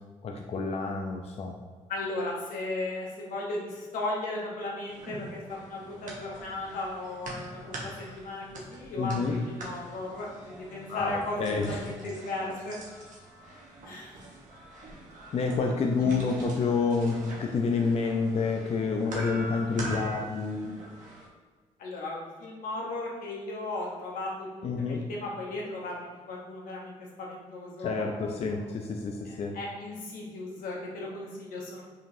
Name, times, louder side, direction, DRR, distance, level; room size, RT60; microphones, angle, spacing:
voice 1, 0.2-1.5 9.0-9.5 10.9-11.8 15.3-20.8 24.6-25.0 27.8-29.6, left 4 dB, 45° left, 2 dB, 0.4 m, -29 dB
voice 2, 1.9-11.4 11.7-12.8 13.8-14.2 16.0-16.1 21.8-28.6 29.2-31.8, left 2 dB, 80° left, -2 dB, 1.0 m, -36 dB
sound 1, 4.9-21.3, right 1 dB, 65° right, 1.0 m, -44 dB
4.8 x 2.9 x 2.7 m, 1.5 s
supercardioid pair, 65°, 14 cm